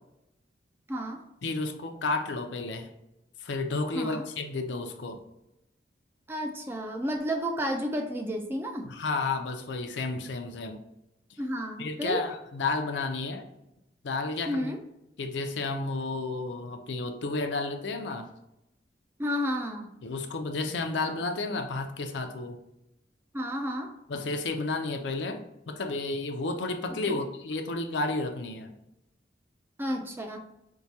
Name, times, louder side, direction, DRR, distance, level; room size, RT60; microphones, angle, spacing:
voice 1, 0.9-1.2 3.9-4.3 6.3-8.9 11.4-12.3 14.5-14.8 19.2-19.9 23.3-24.0 26.9-27.2 29.8-30.4, equal, 15° right, 3 dB, 0.3 m, -32 dB
voice 2, 1.4-2.9 3.4-5.2 8.8-10.8 11.8-13.5 14.0-14.7 15.2-18.3 20.0-22.6 24.1-28.7, left 3 dB, 80° left, 5 dB, 0.5 m, -32 dB
4.6 x 2.2 x 2.7 m, 0.86 s
head